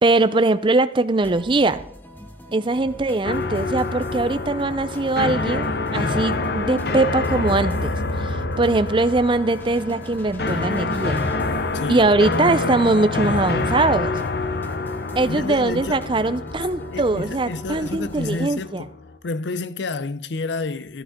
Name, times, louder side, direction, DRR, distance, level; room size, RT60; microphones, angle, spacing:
voice 1, 0.0-1.8 2.5-11.2 11.9-14.2 15.1-18.9, right 2 dB, 30° right, 0.5 m, -21 dB
sound 1, 1.2-18.5, equal, 10° left, 1.0 m, -42 dB
sound 2, 3.2-19.2, left 3 dB, 60° left, 0.9 m, -27 dB
voice 2, 11.7-12.1 15.3-16.0 16.9-18.9 19.2-21.0, left 3 dB, 85° left, 0.6 m, -29 dB
13.5 x 13.0 x 3.7 m
head